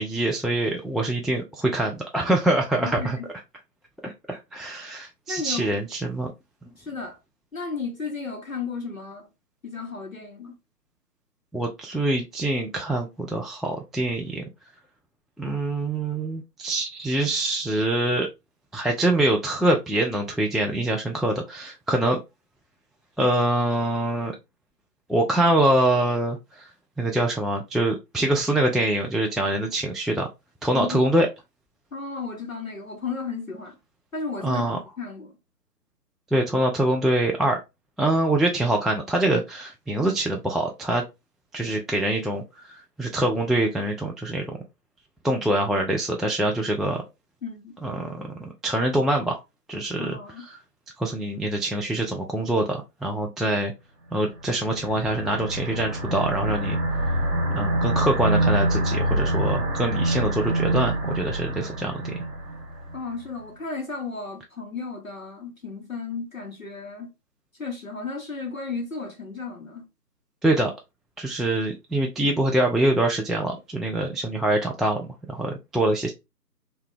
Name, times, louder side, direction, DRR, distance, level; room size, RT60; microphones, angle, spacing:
voice 1, 0.0-3.2 4.0-6.3 11.5-14.4 15.4-18.3 18.7-22.2 23.2-24.4 25.1-26.7 27.0-30.3 30.6-31.3 34.4-34.8 36.3-37.6 38.0-41.0 41.5-42.4 43.0-44.6 45.2-47.0 47.8-48.3 48.6-49.4 49.7-50.2 51.0-53.7 54.1-56.8 57.5-62.1 70.4-70.7 71.2-76.1, right 1 dB, ahead, 0.3 m, -24 dB
voice 2, 2.8-3.3 5.3-5.8 6.8-7.2 7.5-9.3 9.6-10.6 30.7-31.1 31.9-33.8 34.1-35.3 47.4-47.7 50.0-50.5 62.9-67.1 67.6-69.9, left 4 dB, 55° left, 0.7 m, -34 dB
sound 1, 54.4-63.0, right 1 dB, 45° right, 1.6 m, -26 dB
3.2 x 2.2 x 3.6 m
figure-of-eight pair, 175°, 50 cm